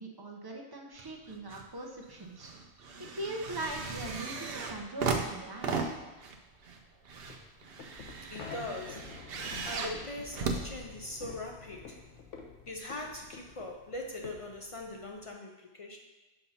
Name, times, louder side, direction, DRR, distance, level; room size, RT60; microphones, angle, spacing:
voice 1, 0.0-2.5 2.8-5.9, right 1 dB, 25° right, 0 dB, 0.6 m, -41 dB
sound 1, 1.0-1.7 2.0-11.4 12.2-12.3, right 4 dB, 60° right, 0.8 m, -37 dB
sound 2, 7.2-15.3, left 5 dB, 85° left, 1.1 m, -49 dB
voice 2, 8.3-9.2 9.7-12.0 12.7-16.0, left 2 dB, 55° left, 1 dB, 0.3 m, -41 dB
6.7 x 2.7 x 5.6 m, 1.2 s
omnidirectional pair, 1.2 m